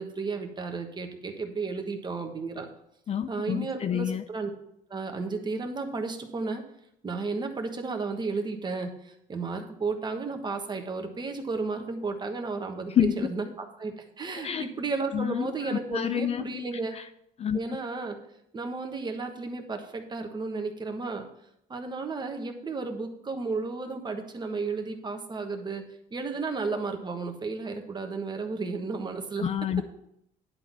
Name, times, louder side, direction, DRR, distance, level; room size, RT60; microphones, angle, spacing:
voice 1, 0.0-2.7 3.3-4.5 4.9-6.6 7.0-16.9 17.5-18.2 18.5-21.3 21.7-29.5, right 4 dB, 25° right, 4 dB, 1.3 m, -33 dB
voice 2, 3.1-4.2 12.9-13.3 14.3-14.7 15.1-16.4 16.9-17.1 17.4-17.6 29.4-29.8, left 9 dB, 40° left, 11 dB, 0.5 m, -28 dB
10.5 x 3.9 x 7.4 m, 0.77 s
cardioid pair, 110°, 17 cm